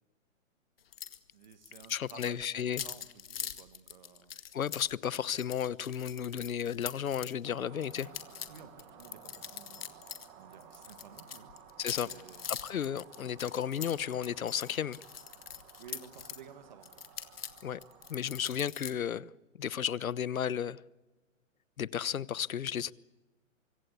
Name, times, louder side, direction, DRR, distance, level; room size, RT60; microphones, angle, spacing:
sound 1, 0.9-1.2 1.4-7.3 7.8-10.3 10.5-16.4 16.8-18.9, left 8 dB, 45° left, 2.1 m, -43 dB
voice 1, 1.3-4.4 8.5-9.8 10.3-11.5 12.0-12.6 15.8-17.1, right 7 dB, 35° right, 1.9 m, -53 dB
voice 2, 1.9-2.8 4.5-8.1 11.8-12.1 12.5-15.0 17.6-17.8 18.1-19.3 19.6-20.8 21.8-22.9, left 9 dB, 85° left, 1.1 m, -33 dB
sound 2, 7.4-19.0, right 7 dB, 10° right, 1.6 m, -55 dB
25.0 x 24.0 x 8.4 m
hypercardioid pair, 180°, 40 cm